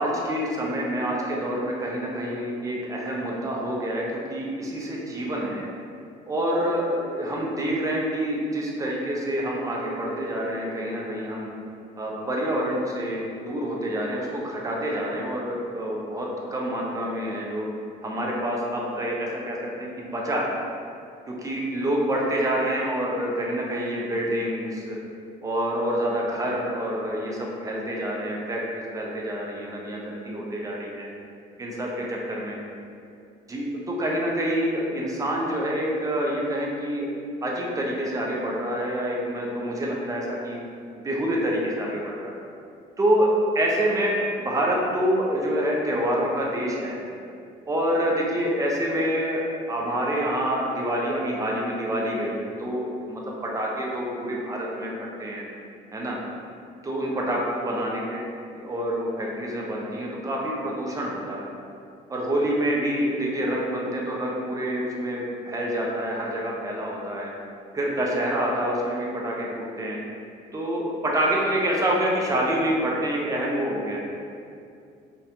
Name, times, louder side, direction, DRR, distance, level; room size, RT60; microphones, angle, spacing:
voice 1, 0.0-4.0 4.3-5.6 6.3-11.5 12.0-17.7 18.0-20.5 21.3-25.0 25.4-31.0 31.6-32.6 33.5-37.1 37.4-40.6 41.0-42.3 43.0-43.3 43.5-44.1 44.4-47.0 47.7-54.9 55.2-55.4 55.9-56.2 56.8-58.0 58.5-61.5 62.1-67.3 67.7-70.0 70.5-74.0, equal, 20° right, -3 dB, 0.4 m, -27 dB
2.3 x 2.1 x 2.8 m, 2.4 s
cardioid pair, 110°, 17 cm